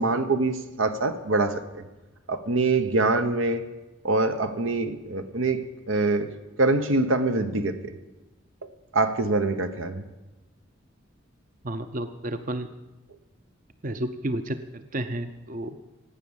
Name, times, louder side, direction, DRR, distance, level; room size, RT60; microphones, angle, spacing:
voice 1, 0.0-1.8 2.3-3.7 4.0-5.6 5.9-6.3 6.6-7.9 8.9-10.0, right 3 dB, 90° right, 9 dB, 1.1 m, -24 dB
voice 2, 11.6-12.7 13.8-15.8, right 1 dB, 45° right, 10 dB, 0.7 m, -31 dB
18.0 x 8.4 x 7.2 m, 1.1 s
head